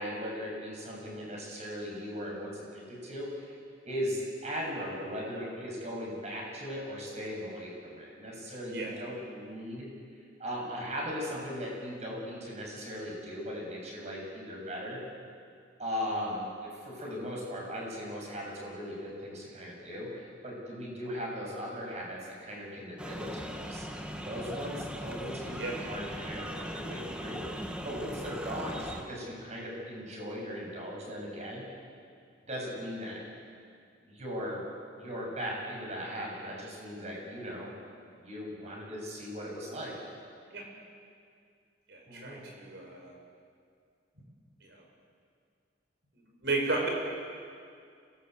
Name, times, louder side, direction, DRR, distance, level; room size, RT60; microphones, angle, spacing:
voice 1, 0.0-3.6 3.9-9.9 10.4-15.0 15.8-23.8 24.2-27.5 27.8-31.6 32.5-33.2 34.0-34.6 35.0-37.7 38.2-39.9 42.1-42.4, equal, 35° right, -2 dB, 7.3 m, -38 dB
sound 1, 23.0-29.0, equal, 5° right, 1.5 m, -39 dB
voice 2, 41.9-43.1 46.4-46.9, right 3 dB, 60° right, 0 dB, 6.3 m, -33 dB
26.5 x 19.0 x 8.3 m, 2.2 s
head